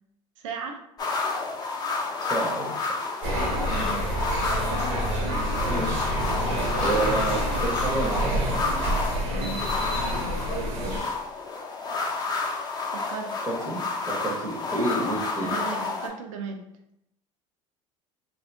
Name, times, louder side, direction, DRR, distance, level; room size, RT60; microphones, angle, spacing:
voice 1, 0.4-0.8 3.7-4.1 9.4-9.7 12.9-13.3 15.4-16.6, right 5 dB, 85° right, 4 dB, 0.4 m, -36 dB
sound 1, 1.0-16.1, left 3 dB, 25° left, 0.5 m, -30 dB
voice 2, 2.2-3.1 5.7-6.2 6.6-8.8 10.8-11.2 13.3-15.6, right 2 dB, 20° right, -1 dB, 0.6 m, -31 dB
sound 2, 3.2-11.0, right 1 dB, 70° right, 0.8 m, -28 dB
2.7 x 2.2 x 2.6 m, 0.78 s
hypercardioid pair, 80°, 16 cm